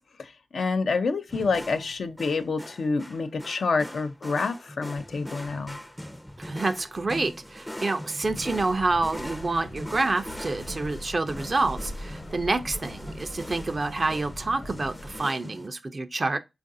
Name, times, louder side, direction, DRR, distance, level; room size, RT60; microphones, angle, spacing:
voice 1, 0.2-5.8, left 4 dB, 75° left, 0.4 m, -28 dB
sound 1, 1.3-15.7, equal, 10° left, 0.5 m, -41 dB
voice 2, 6.4-16.4, right 3 dB, 45° right, 0.4 m, -28 dB
sound 2, 8.2-15.2, left 1 dB, 60° left, 1.0 m, -41 dB
4.6 x 2.4 x 2.5 m
cardioid pair, 45°, 0 cm